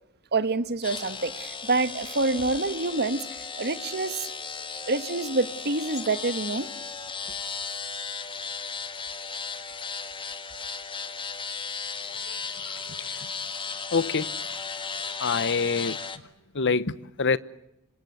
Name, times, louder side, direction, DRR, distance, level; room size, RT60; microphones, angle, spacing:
voice 1, 0.3-3.2 3.6-4.3 4.9-6.7, right 3 dB, 50° right, 1.4 m, -27 dB
sound 1, 0.8-16.2, left 5 dB, 25° left, 1.6 m, -35 dB
voice 2, 12.6-13.3 13.9-14.3 15.2-16.0 16.5-17.4, left 5 dB, 55° left, 1.0 m, -26 dB
26.5 x 25.5 x 8.0 m
head